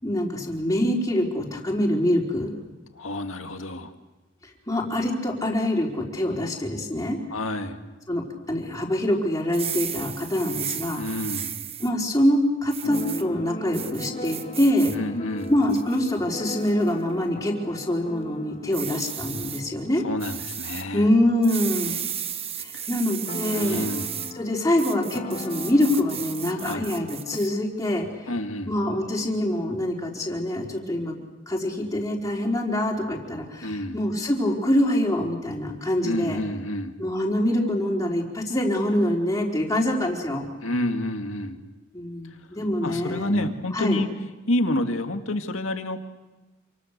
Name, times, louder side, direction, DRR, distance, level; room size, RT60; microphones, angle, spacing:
voice 1, 0.0-2.5 4.4-7.2 8.1-11.0 11.8-15.0 15.5-20.0 20.9-22.0 22.6-23.9 24.3-28.0 28.7-36.4 37.0-40.5 41.9-44.0, left 1 dB, 15° left, -2 dB, 4.4 m, -25 dB
voice 2, 3.0-3.9 7.3-7.8 11.0-11.6 14.9-15.5 20.0-21.1 22.7-22.9 23.5-24.1 26.6-26.9 28.3-28.7 33.6-34.0 36.0-36.9 40.6-41.6 42.8-44.1 44.5-46.1, left 1 dB, 85° left, 5 dB, 2.2 m, -29 dB
sound 1, 9.4-11.9 12.7-13.2 13.7-15.0 15.4-16.0 16.6-16.9 18.7-19.6 20.2-20.8 21.4-24.3 24.8-27.5, right 9 dB, 30° right, 1.1 m, -34 dB
Keyboard (musical), 12.8-22.4 22.6-22.7 23.0-27.4, left 1 dB, 35° left, 1.1 m, -39 dB
28.0 x 25.5 x 6.7 m, 1.1 s
head